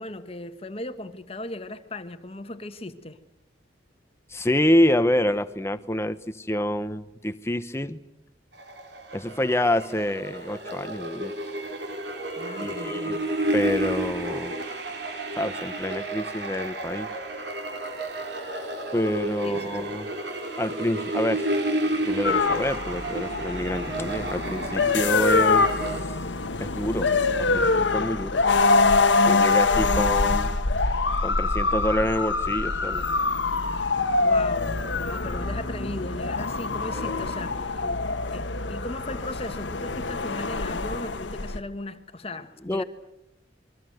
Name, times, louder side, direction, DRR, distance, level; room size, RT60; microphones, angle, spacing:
voice 1, 0.0-3.2 12.4-13.2 19.4-19.9 34.2-37.9 38.3-42.8, left 2 dB, 30° left, 9 dB, 1.4 m, -37 dB
voice 2, 4.3-8.0 9.1-11.3 12.6-13.2 13.5-14.6 15.3-17.1 18.9-20.1 20.6-21.5 22.1-25.7 26.6-27.1 27.4-28.4 29.2-30.6 31.2-33.0 36.9-37.3 37.8-38.0 42.6-42.8, left 1 dB, 15° left, 11 dB, 1.0 m, -27 dB
sound 1, 8.5-26.0, right 1 dB, 65° right, 4.4 m, -31 dB
sound 2, 22.2-41.6, left 3 dB, 80° left, 1.4 m, -24 dB
27.5 x 22.5 x 7.9 m, 0.86 s
head